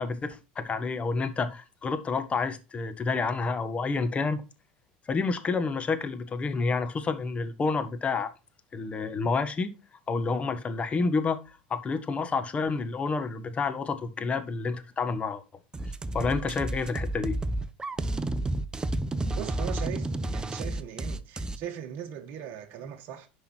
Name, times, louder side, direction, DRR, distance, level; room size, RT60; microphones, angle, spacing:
voice 1, 0.0-4.4 5.1-8.3 8.7-9.7 10.1-15.4 16.1-17.4, left 4 dB, 25° left, 1.6 m, -29 dB
sound 1, 15.7-21.6, right 2 dB, 15° right, 0.8 m, -31 dB
voice 2, 19.3-23.3, right 8 dB, 50° right, 1.6 m, -39 dB
10.5 x 5.5 x 4.5 m
hypercardioid pair, 100°, 5 cm